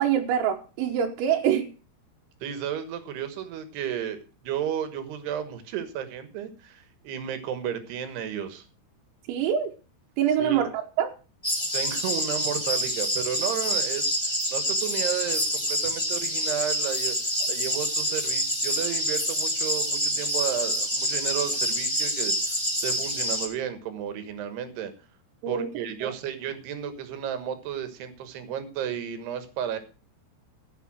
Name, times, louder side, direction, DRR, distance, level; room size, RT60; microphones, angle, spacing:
voice 1, 0.0-1.7 9.3-9.7 10.2-11.1 25.4-25.7 26.0-26.1, right 9 dB, 85° right, 1 dB, 3.9 m, -25 dB
voice 2, 2.4-8.6 10.4-10.7 11.7-14.1 14.5-17.2 17.5-24.9 25.5-29.8, right 9 dB, 65° right, 10 dB, 3.0 m, -33 dB
sound 1, 11.4-23.5, equal, 10° left, 1.2 m, -27 dB
15.0 x 6.8 x 6.1 m, 0.35 s
omnidirectional pair, 6.0 m